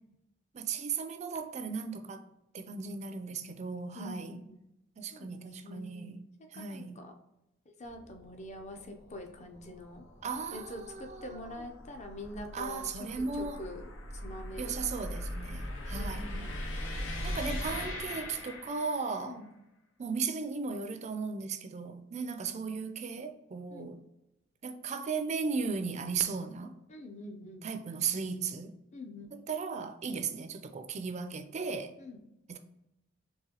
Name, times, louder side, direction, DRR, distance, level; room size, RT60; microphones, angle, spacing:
voice 1, 0.5-2.2 2.5-4.4 5.0-6.2 6.5-7.1 10.2-11.6 12.5-13.7 14.6-16.4 17.2-19.4 20.0-24.0 24.6-26.8 27.6-28.8 29.3-31.9 32.5-32.6, right 5 dB, 35° right, 0.4 m, -36 dB
voice 2, 3.9-4.4 5.1-5.3 5.6-6.2 6.5-7.1 7.7-10.0 10.5-13.9 14.2-15.0 15.6-16.6 19.2-19.5 22.1-22.4 23.7-23.9 26.9-27.7 28.9-29.3 32.0-32.2, left 1 dB, 35° left, 0.6 m, -45 dB
sound 1, 7.8-19.2, left 1 dB, 85° left, 0.7 m, -40 dB
4.7 x 3.2 x 2.9 m
head